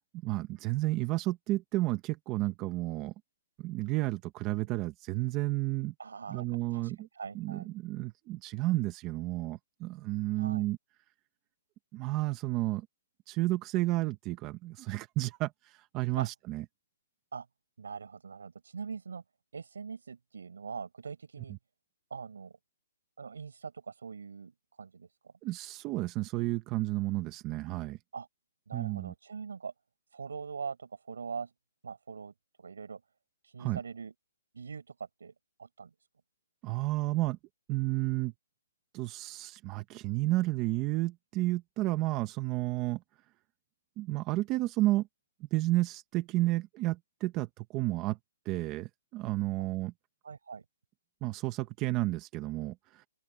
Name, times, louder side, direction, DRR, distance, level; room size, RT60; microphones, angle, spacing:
voice 1, 0.2-3.1 3.6-5.9 6.3-7.1 7.3-10.8 11.9-12.9 13.3-16.6 25.4-28.0 28.7-29.1 33.6-33.8 36.6-37.4 37.7-38.3 38.9-43.0 44.0-45.1 45.5-48.2 48.4-49.9 51.2-53.1, right 18 dB, 20° right, 1.1 m, -31 dB
voice 2, 6.0-7.7 10.4-10.7 16.2-16.3 17.3-17.5 17.8-19.2 19.5-21.6 22.1-22.5 23.2-25.3 28.1-28.3 28.7-29.7 30.1-31.5 31.8-32.3 32.6-33.0 33.4-34.1 34.5-35.3 35.6-35.9 49.6-49.7 50.2-50.6, right 5 dB, 85° right, 4.9 m, -42 dB
open air
hypercardioid pair, 170°, 0 cm